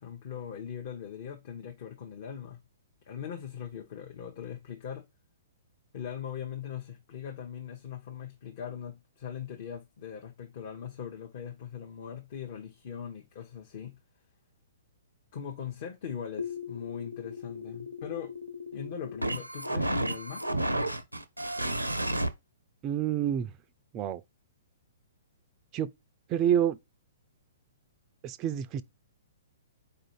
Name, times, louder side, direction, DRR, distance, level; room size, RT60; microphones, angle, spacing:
voice 1, 0.0-2.6 3.1-5.1 5.9-14.0 15.3-18.3 18.7-20.4, left 8 dB, 45° left, 0.8 m, -40 dB
sound 1, 16.4-22.3, right 1 dB, 85° right, 0.5 m, -33 dB
voice 2, 22.8-23.5 23.9-24.2 25.7-25.9 26.3-26.8 28.2-28.8, right 10 dB, 25° right, 0.3 m, -28 dB
4.3 x 2.6 x 4.6 m
figure-of-eight pair, 115°, 0 cm